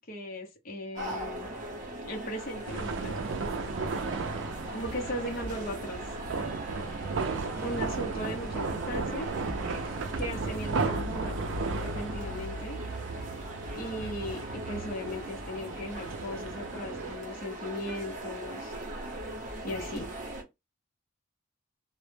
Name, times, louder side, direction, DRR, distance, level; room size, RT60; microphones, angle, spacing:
voice 1, 0.1-1.5 2.0-3.2 4.7-6.2 7.6-9.3 10.2-11.4 11.8-12.8 13.7-18.7 19.6-20.1, equal, 45° left, 0.6 m, -37 dB
sound 1, 1.0-20.4, right 1 dB, 35° right, 0.8 m, -40 dB
sound 2, 2.7-17.1, right 4 dB, 60° right, 0.4 m, -35 dB
2.0 x 2.0 x 3.1 m
head